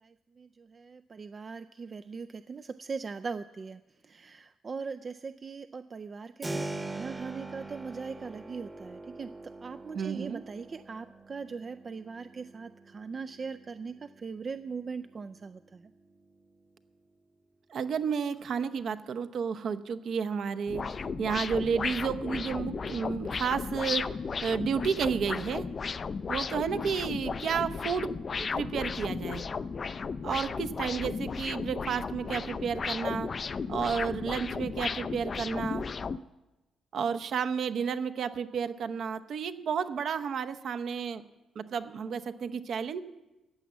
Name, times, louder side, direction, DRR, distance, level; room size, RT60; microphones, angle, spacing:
voice 1, 0.0-9.3 9.6-15.9, right 5 dB, 35° right, 10 dB, 0.4 m, -40 dB
Keyboard (musical), 6.4-17.1, right 2 dB, 15° right, 1.0 m, -44 dB
voice 2, 9.9-10.4 17.7-20.8 21.2-24.1 24.4-25.7 26.3-29.4 30.2-33.3 33.7-35.8 36.9-41.2 41.5-43.0, right 6 dB, 55° right, 10 dB, 0.8 m, -31 dB
sound 1, 20.7-36.2, left 5 dB, 35° left, 0.4 m, -34 dB
14.5 x 9.2 x 7.3 m, 1.0 s
cardioid pair, 120°, 0 cm